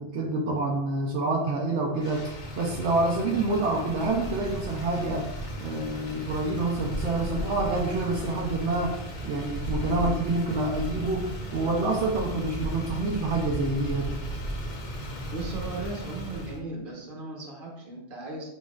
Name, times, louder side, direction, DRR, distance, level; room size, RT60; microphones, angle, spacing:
voice 1, 0.0-5.3 5.6-9.0 9.2-14.2, right 2 dB, 80° right, -1 dB, 0.9 m, -27 dB
Motor vehicle (road), 2.0-16.6, equal, 50° left, 0.8 m, -35 dB
voice 2, 15.1-18.5, right 3 dB, 50° right, -1 dB, 1.2 m, -37 dB
6.2 x 2.9 x 2.3 m, 0.86 s
omnidirectional pair, 1.2 m